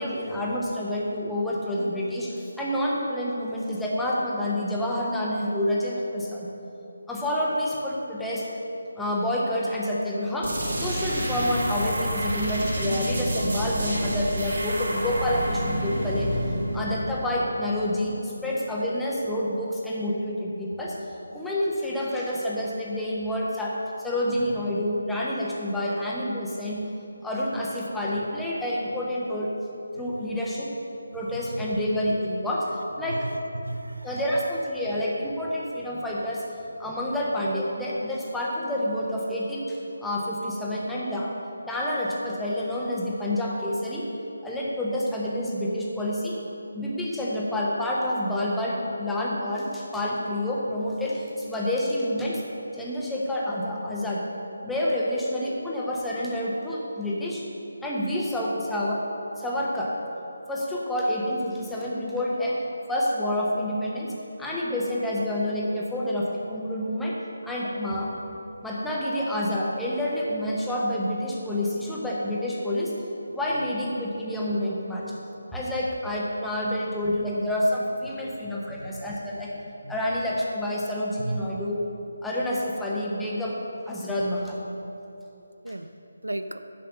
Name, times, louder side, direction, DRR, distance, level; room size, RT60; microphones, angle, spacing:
voice 1, 0.0-6.5 7.1-8.5 9.0-16.3 16.7-20.9 21.3-26.8 27.2-29.5 30.0-30.7 31.1-32.7 33.0-33.3 34.0-36.4 36.8-41.3 41.7-44.1 44.4-46.4 46.7-52.4 52.7-54.2 54.6-57.4 57.8-59.0 59.4-59.9 60.5-62.6 62.9-67.2 67.4-68.1 68.6-72.9 73.3-75.0 75.5-79.6 79.9-81.8 82.2-83.6 83.9-84.6, left 1 dB, 5° left, -6 dB, 1.0 m, -28 dB
sound 1, 10.4-18.0, equal, 50° right, 2.1 m, -29 dB
voice 2, 30.0-30.3 31.3-31.7 33.1-34.2 78.1-78.4 78.7-79.0 79.8-80.0 81.2-81.4 85.6-85.9 86.2-86.7, right 2 dB, 75° right, 10 dB, 0.5 m, -35 dB
10.0 x 5.7 x 6.6 m, 2.9 s
figure-of-eight pair, 155°, 0 cm